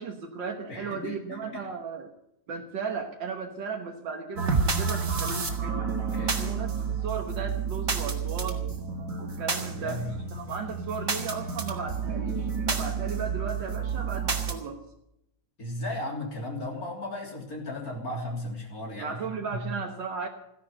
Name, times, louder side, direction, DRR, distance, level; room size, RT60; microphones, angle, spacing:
voice 1, 0.0-2.1 2.5-5.9 6.2-6.8 7.0-8.7 9.2-10.0 10.3-14.8 19.0-20.3, right 5 dB, 80° right, 2 dB, 2.0 m, -35 dB
voice 2, 0.7-1.6 6.1-6.9 9.6-10.2 15.6-19.2 19.5-19.7, left 1 dB, 50° left, 1 dB, 3.9 m, -36 dB
sound 1, 4.4-14.5, right 5 dB, 50° right, 2.3 m, -30 dB
15.5 x 11.0 x 7.7 m, 0.80 s
omnidirectional pair, 2.0 m